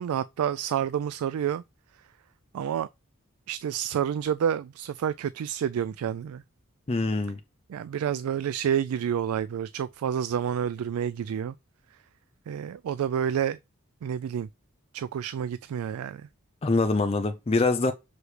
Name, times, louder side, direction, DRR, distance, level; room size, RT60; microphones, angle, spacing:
voice 1, 0.0-1.6 2.5-2.9 3.5-6.4 7.7-11.5 12.5-13.6 14.0-14.5 14.9-16.3, right 8 dB, 85° right, 0.3 m, -29 dB
voice 2, 6.9-7.4 16.6-17.9, left 3 dB, 25° left, 0.4 m, -24 dB
6.3 x 4.9 x 3.2 m
head